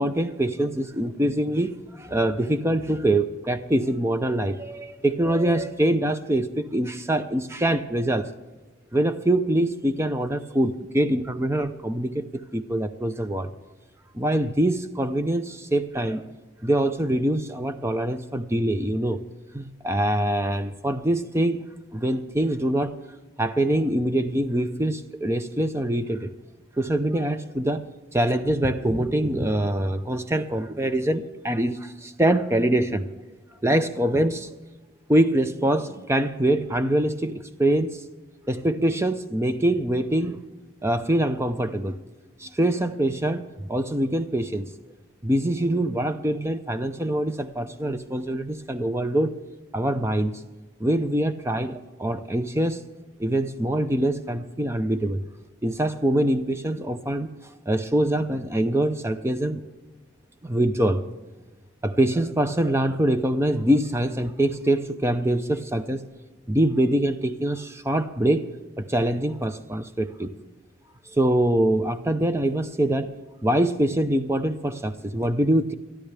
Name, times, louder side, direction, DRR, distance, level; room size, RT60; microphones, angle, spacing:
voice 1, 0.0-8.3 8.9-13.5 14.1-16.2 16.6-19.2 19.5-21.6 21.9-23.0 23.4-26.3 26.8-27.9 28.1-33.1 33.6-34.5 35.1-38.0 38.5-40.4 40.8-42.0 42.4-44.7 45.2-49.4 49.7-50.4 50.8-52.8 53.2-55.2 55.6-57.3 57.7-59.6 60.4-61.0 61.8-66.1 66.5-68.5 68.8-70.3 71.1-73.2 73.4-75.7, right 1 dB, 15° right, 10 dB, 0.6 m, -24 dB
22.5 x 13.0 x 3.4 m, 1.2 s
head